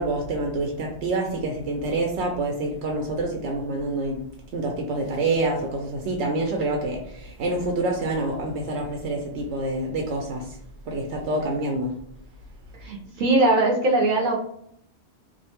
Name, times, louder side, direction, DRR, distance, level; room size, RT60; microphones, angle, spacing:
voice 1, 0.0-4.3 4.5-10.6 10.9-11.9, right 2 dB, 90° right, 1 dB, 0.9 m, -27 dB
voice 2, 12.8-14.4, right 2 dB, 60° right, -2 dB, 0.6 m, -21 dB
2.6 x 2.1 x 2.8 m, 0.71 s
omnidirectional pair, 1.1 m